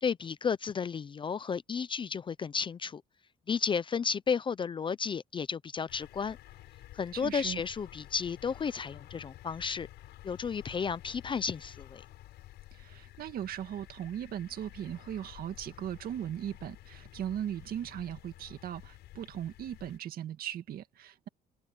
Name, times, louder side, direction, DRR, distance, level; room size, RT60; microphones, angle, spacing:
voice 1, 0.0-3.0 3.5-6.4 6.9-9.9 10.2-12.0, left 6 dB, 30° left, 0.5 m, -33 dB
sound 1, 5.9-20.0, left 15 dB, 80° left, 7.2 m, -52 dB
voice 2, 7.1-7.6 12.7-21.3, right 10 dB, 60° right, 2.1 m, -38 dB
open air
cardioid pair, 110°, 17 cm